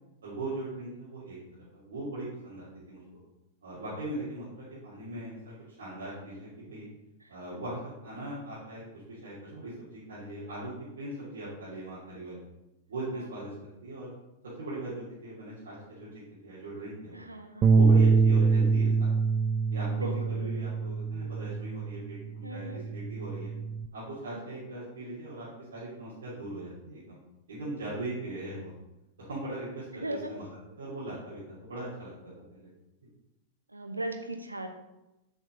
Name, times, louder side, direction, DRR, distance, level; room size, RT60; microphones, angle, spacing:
voice 1, 0.2-3.2 3.6-6.9 7.3-12.4 12.9-13.5 13.8-14.1 14.6-17.2 17.8-19.1 19.7-23.5 23.9-27.2 27.5-28.7 29.2-30.5 30.8-32.7, right 2 dB, 65° right, -10 dB, 2.7 m, -40 dB
voice 2, 17.1-17.7 20.0-20.6 22.4-22.8 24.3-24.6 30.0-30.3 33.7-34.7, right 1 dB, 85° right, 5 dB, 0.9 m, -38 dB
Bass guitar, 17.6-22.1 22.5-23.9, right 4 dB, 30° right, 0.5 m, -25 dB
7.5 x 5.3 x 5.2 m, 0.97 s
figure-of-eight pair, 95°, 0 cm